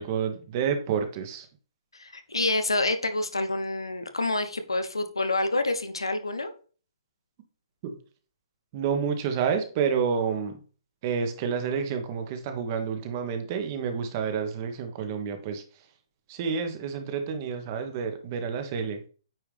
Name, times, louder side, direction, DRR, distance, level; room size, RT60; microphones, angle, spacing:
voice 1, 0.0-1.5 7.8-7.9 8.7-10.6 11.0-15.6 16.3-19.0, right 6 dB, 40° right, 7 dB, 1.4 m, -29 dB
voice 2, 1.9-6.5, left 2 dB, 80° left, 9 dB, 1.0 m, -27 dB
9.0 x 4.7 x 3.5 m, 0.39 s
figure-of-eight pair, 125°, 3 cm